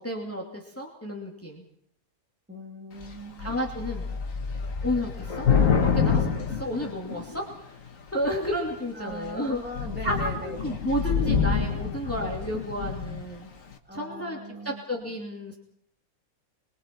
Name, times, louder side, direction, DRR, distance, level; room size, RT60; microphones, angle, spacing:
voice 1, 0.0-1.6 3.4-4.0 4.8-5.5 5.8-7.8 8.1-9.6 10.0-13.5 13.9-15.6, equal, 10° left, 0 dB, 2.6 m, -31 dB
voice 2, 2.5-3.6 8.9-10.7 12.0-12.6 13.9-14.8, equal, 5° right, -2 dB, 3.1 m, -40 dB
Thunder / Rain, 3.0-3.1 3.4-7.5 8.2-8.7 9.1-9.3 9.5-13.3, left 6 dB, 60° left, 2.0 m, -27 dB
29.5 x 22.0 x 4.6 m, 0.70 s
omnidirectional pair, 1.6 m